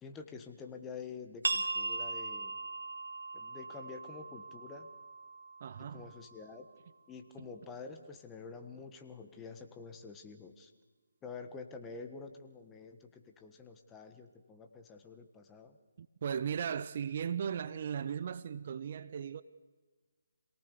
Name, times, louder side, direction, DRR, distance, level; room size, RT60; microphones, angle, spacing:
voice 1, 0.0-2.6 3.3-4.9 5.8-6.7 7.1-10.7 11.2-15.8, left 5 dB, 10° left, 1.5 m, -48 dB
sound 1, 1.4-6.8, right 3 dB, 70° right, 2.0 m, -39 dB
voice 2, 5.6-6.1 16.0-19.4, right 8 dB, 40° right, 0.8 m, -37 dB
27.0 x 18.5 x 6.8 m
figure-of-eight pair, 150°, 0 cm